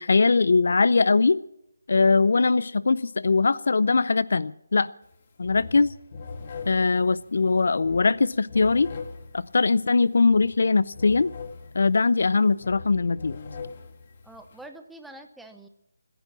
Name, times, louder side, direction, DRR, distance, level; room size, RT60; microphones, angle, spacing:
voice 1, 0.0-1.4 1.9-4.9 5.4-5.9 6.7-8.9 9.3-11.3 11.7-13.4, left 4 dB, 60° left, 19 dB, 0.5 m, -21 dB
sound 1, 5.0-5.2 5.4-14.7, left 4 dB, 35° left, 1.7 m, -42 dB
voice 2, 14.2-15.7, right 1 dB, ahead, 6 dB, 0.7 m, -45 dB
23.0 x 10.5 x 6.0 m, 0.78 s
figure-of-eight pair, 170°, 0 cm